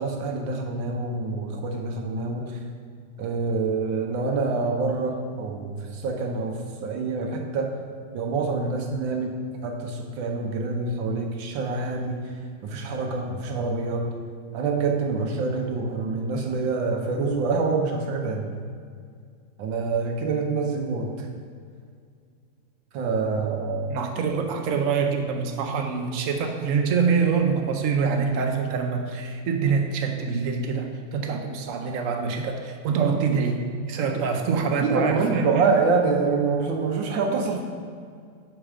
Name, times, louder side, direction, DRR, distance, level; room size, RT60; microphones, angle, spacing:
voice 1, 0.0-2.6 3.2-7.8 8.1-9.3 9.6-12.2 12.6-14.0 14.5-18.5 19.6-21.1 22.9-24.0 34.8-37.6, right 4 dB, 90° right, 1 dB, 1.6 m, -26 dB
voice 2, 23.9-35.7, right 5 dB, 75° right, 4 dB, 0.7 m, -25 dB
4.9 x 4.6 x 6.0 m, 2.1 s
omnidirectional pair, 2.0 m